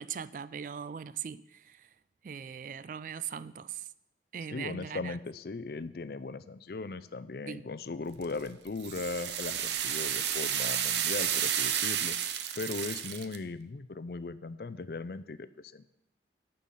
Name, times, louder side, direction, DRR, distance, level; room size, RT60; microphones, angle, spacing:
voice 1, 0.0-1.8 2.2-3.8 4.3-5.2 7.5-7.6, right 7 dB, 45° right, 0.3 m, -40 dB
voice 2, 4.5-12.2 12.6-15.9, left 3 dB, 60° left, 0.5 m, -38 dB
sound 1, 8.2-13.4, right 9 dB, 80° right, 0.7 m, -31 dB
10.5 x 5.5 x 7.5 m
head